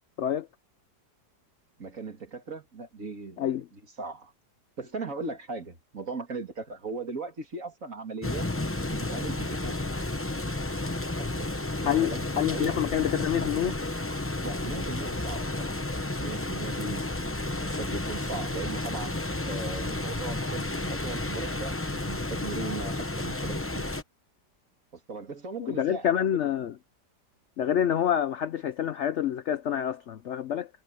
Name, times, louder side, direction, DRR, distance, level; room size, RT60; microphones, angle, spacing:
voice 1, 1.8-4.3 4.8-8.5 8.9-9.8 11.2-11.5 11.8-12.8 14.4-15.7 16.2-19.2 19.5-21.8 22.0-23.9 25.1-26.1, right 3 dB, 50° right, 3.0 m, -38 dB
sound 1, 8.2-24.0, left 2 dB, 15° left, 0.5 m, -32 dB
voice 2, 11.8-13.8 25.6-26.7 27.6-30.7, left 10 dB, 65° left, 0.7 m, -27 dB
omnidirectional pair, 1.8 m